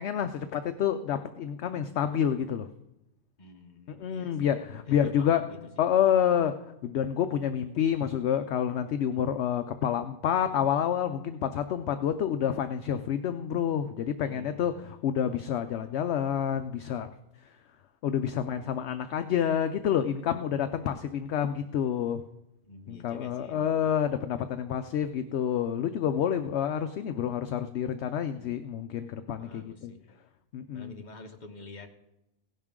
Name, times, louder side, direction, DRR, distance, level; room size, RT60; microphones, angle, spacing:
voice 1, 0.0-2.7 4.0-5.4 5.8-6.5 6.8-17.1 18.0-22.2 22.9-29.9 30.5-30.9, left 9 dB, 65° left, 9 dB, 0.8 m, -28 dB
voice 2, 3.4-4.6 4.9-5.9 14.2-14.8 22.6-23.7 29.4-30.0 30.7-31.9, left 2 dB, 40° left, 4 dB, 1.2 m, -48 dB
16.5 x 11.0 x 3.7 m, 0.89 s
omnidirectional pair, 1.3 m